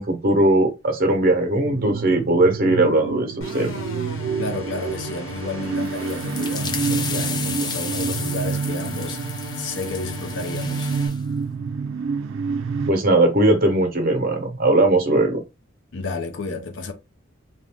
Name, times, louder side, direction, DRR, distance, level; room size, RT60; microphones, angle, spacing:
voice 1, 0.0-3.8 12.9-15.4, right 2 dB, 45° right, 0.9 m, -19 dB
sound 1, 1.6-12.9, right 5 dB, 80° right, 0.4 m, -28 dB
sound 2, 3.4-11.1, left 1 dB, 90° left, 1.2 m, -37 dB
voice 2, 4.4-9.2 9.6-10.9 15.9-16.9, left 3 dB, 65° left, 0.7 m, -31 dB
sound 3, 5.8-11.2, left 5 dB, 20° left, 0.4 m, -33 dB
3.0 x 2.6 x 3.4 m
head